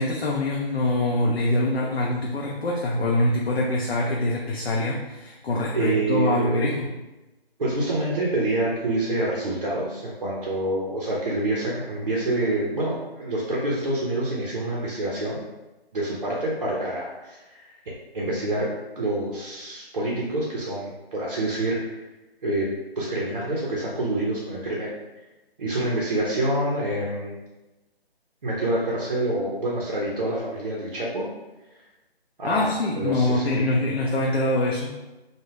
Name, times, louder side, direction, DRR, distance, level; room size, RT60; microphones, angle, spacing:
voice 1, 0.0-6.9 32.4-35.0, left 2 dB, 75° left, -2 dB, 0.5 m, -24 dB
voice 2, 5.7-6.7 7.6-15.4 15.9-17.7 18.1-18.7 19.0-22.0 22.4-22.7 23.0-24.9 25.6-27.4 28.4-31.3 32.4-33.4, right 1 dB, 40° right, -5 dB, 0.5 m, -27 dB
2.2 x 2.1 x 3.2 m, 1.1 s
figure-of-eight pair, 150°, 31 cm